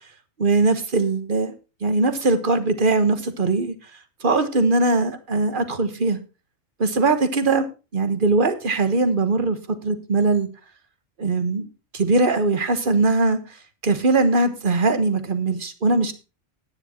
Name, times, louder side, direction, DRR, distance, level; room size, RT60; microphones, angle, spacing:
voice 1, 0.4-1.5 1.8-3.7 4.2-6.2 6.8-7.7 7.9-10.5 11.2-11.7 11.9-13.4 13.8-16.1, right 3 dB, 40° right, 10 dB, 1.4 m, -20 dB
10.5 x 9.9 x 4.3 m, 0.31 s
omnidirectional pair, 1.3 m